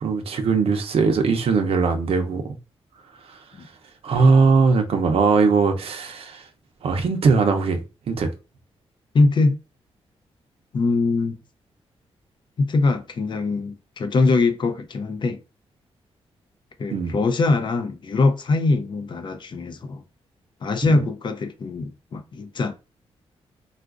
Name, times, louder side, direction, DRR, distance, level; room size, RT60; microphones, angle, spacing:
voice 1, 0.0-2.4 4.0-6.4 6.8-7.8 8.1-8.3 16.9-17.2 20.9-21.0, right 4 dB, 65° right, 0.6 m, -20 dB
voice 2, 9.1-9.6 10.7-11.4 12.6-15.4 16.8-20.0 20.6-22.7, left 3 dB, 45° left, 0.5 m, -22 dB
3.7 x 2.4 x 2.4 m
cardioid pair, 95°, 11 cm